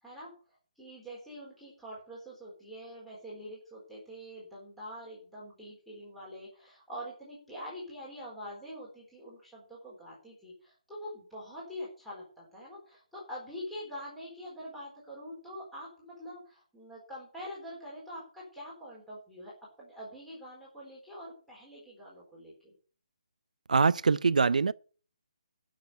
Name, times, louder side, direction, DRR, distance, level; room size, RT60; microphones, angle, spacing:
voice 1, 0.0-0.3 0.8-22.7, equal, ahead, 4.1 m, -45 dB
voice 2, 23.7-24.7, right 4 dB, 80° right, 0.5 m, -23 dB
11.5 x 6.5 x 7.8 m
hypercardioid pair, 160°, 4 cm